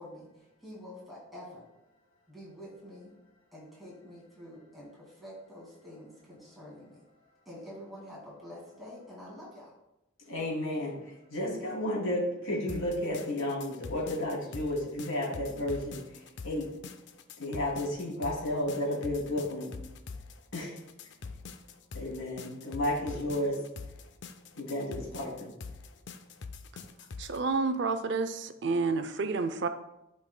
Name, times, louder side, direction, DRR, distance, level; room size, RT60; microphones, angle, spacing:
voice 1, 0.0-1.6 2.3-3.2 3.5-7.0 7.5-9.7, left 1 dB, ahead, -7 dB, 2.2 m, -47 dB
voice 2, 10.3-16.0 16.4-16.7 17.4-19.7 20.5-20.7 21.9-23.6 24.6-25.5, left 1 dB, 90° left, -4 dB, 2.7 m, -32 dB
sound 1, 12.7-27.4, left 4 dB, 60° left, 0.4 m, -44 dB
voice 3, 27.2-29.7, right 4 dB, 60° right, 9 dB, 0.5 m, -29 dB
11.5 x 5.3 x 2.2 m, 0.91 s
head